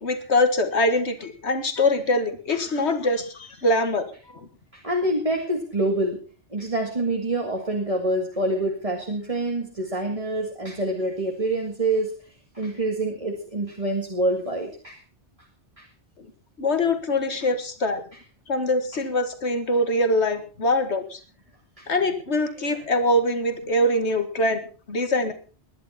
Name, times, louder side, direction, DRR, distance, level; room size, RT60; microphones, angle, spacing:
voice 1, 0.0-4.5 16.2-16.3 16.6-18.0 18.5-21.2 21.9-24.6 24.9-25.3, left 1 dB, 70° left, 8 dB, 2.1 m, -23 dB
voice 2, 4.7-6.2 6.5-12.2 12.5-15.0 15.8-15.9 18.9-19.0 21.8-21.9 22.7-22.8, right 1 dB, 30° right, 1 dB, 2.1 m, -26 dB
21.0 x 11.0 x 4.3 m, 0.39 s
omnidirectional pair, 1.2 m